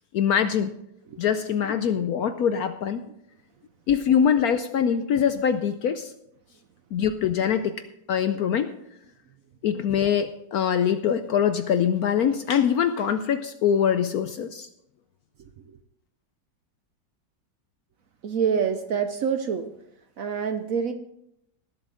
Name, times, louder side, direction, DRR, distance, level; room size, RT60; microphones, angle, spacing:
voice 1, 0.1-0.7 1.2-3.0 3.9-6.1 6.9-7.8 8.1-8.7 9.6-14.7, left 8 dB, 70° left, 10 dB, 0.9 m, -23 dB
voice 2, 15.4-15.8 18.2-19.7 20.2-20.9, right 7 dB, 60° right, 8 dB, 0.9 m, -27 dB
19.0 x 7.7 x 3.8 m, 0.78 s
omnidirectional pair, 2.0 m